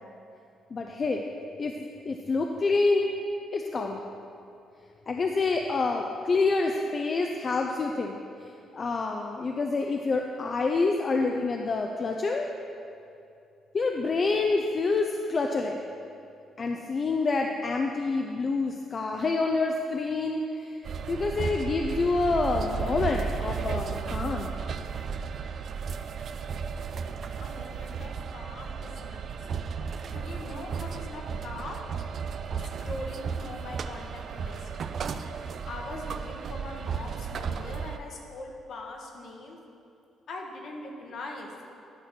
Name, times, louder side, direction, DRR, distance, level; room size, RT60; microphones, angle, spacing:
voice 1, 0.7-1.2 1.6-1.7 2.1-3.1 3.5-4.0 5.1-12.5 13.7-15.8 16.6-20.8 21.1-24.6, left 3 dB, 40° left, 2 dB, 0.5 m, -27 dB
sound 1, 20.8-38.0, right 6 dB, 55° right, 0.4 m, -34 dB
voice 2, 27.4-29.4 30.1-31.9 32.8-34.7 35.3-39.6 40.3-41.5, left 2 dB, 65° left, 1 dB, 1.3 m, -41 dB
11.0 x 4.1 x 6.0 m, 2.6 s
cardioid pair, 90°, 0 cm